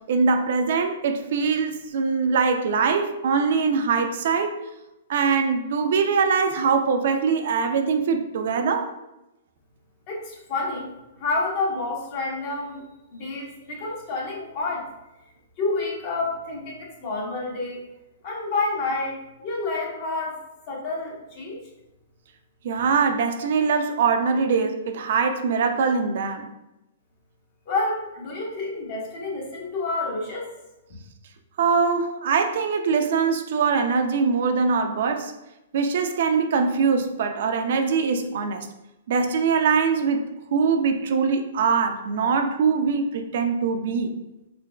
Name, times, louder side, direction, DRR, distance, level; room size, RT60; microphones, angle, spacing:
voice 1, 0.1-4.6 5.1-8.9 22.6-26.5 31.6-35.3 35.7-38.7 39.1-40.2 40.5-44.1, right 5 dB, 65° right, 6 dB, 0.4 m, -22 dB
voice 2, 10.1-10.9 11.2-12.8 13.1-14.9 15.6-17.9 18.2-20.4 20.7-21.6 27.7-30.5, left 3 dB, 45° left, -2 dB, 1.1 m, -29 dB
3.8 x 3.1 x 2.2 m, 0.94 s
hypercardioid pair, 135°, 0 cm